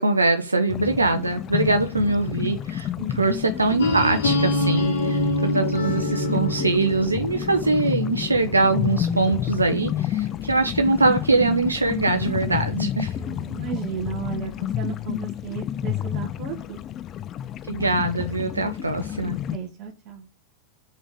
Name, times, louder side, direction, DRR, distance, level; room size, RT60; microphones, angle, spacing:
voice 1, 0.0-13.1 17.7-19.4, right 3 dB, 80° right, 1.0 m, -23 dB
sound 1, 0.7-19.6, left 11 dB, 30° left, 0.4 m, -30 dB
sound 2, 3.8-9.6, left 1 dB, 65° left, 3.2 m, -26 dB
voice 2, 13.2-16.8 19.2-20.3, right 7 dB, 40° right, 1.7 m, -34 dB
6.1 x 5.6 x 7.0 m
figure-of-eight pair, 90°, 0 cm